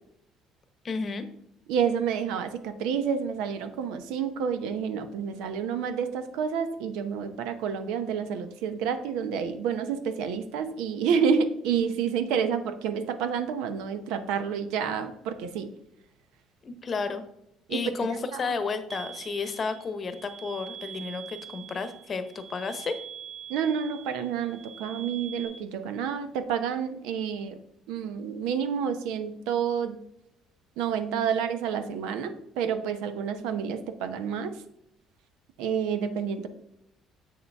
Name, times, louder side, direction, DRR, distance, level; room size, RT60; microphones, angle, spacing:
voice 1, 0.8-1.2 16.6-17.2 17.7-22.9, left 4 dB, 35° left, 10 dB, 0.9 m, -32 dB
voice 2, 1.7-15.7 17.7-17.8 18.3-18.5 23.5-27.6 27.9-30.0 30.8-34.6 35.6-36.5, right 7 dB, 90° right, 10 dB, 0.8 m, -29 dB
sound 1, 18.9-25.5, right 8 dB, 35° right, 3.3 m, -44 dB
7.5 x 6.6 x 3.4 m, 0.79 s
cardioid pair, 115°, 0 cm